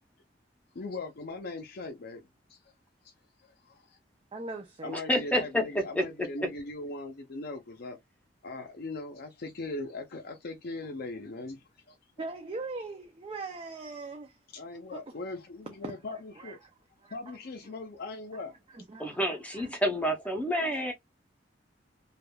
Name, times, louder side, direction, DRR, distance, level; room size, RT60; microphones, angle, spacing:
voice 1, 0.7-2.2 2.5-2.6 3.4-4.0 4.8-8.0 8.4-12.0 14.5-16.6 17.1-18.8, left 2 dB, 60° left, 0.6 m, -40 dB
voice 2, 4.3-5.0 12.2-14.4 14.9-15.0 15.8-16.6 17.0-17.4 18.3-18.4 18.7-19.7, right 3 dB, 30° right, 0.4 m, -41 dB
voice 3, 4.9-6.3 19.0-20.9, equal, 10° left, 0.7 m, -29 dB
3.3 x 2.3 x 2.2 m
head